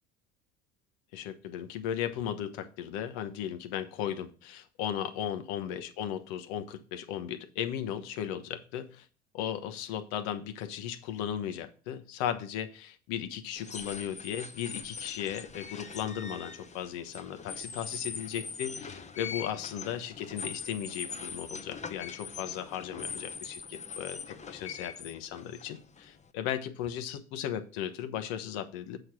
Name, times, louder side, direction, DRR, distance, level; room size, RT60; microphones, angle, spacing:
voice 1, 1.1-9.1 9.3-29.0, left 10 dB, 70° left, 1.1 m, -36 dB
sound 1, 13.6-26.3, left 5 dB, 20° left, 0.8 m, -42 dB
7.7 x 5.0 x 6.0 m
hypercardioid pair, 75°, 38 cm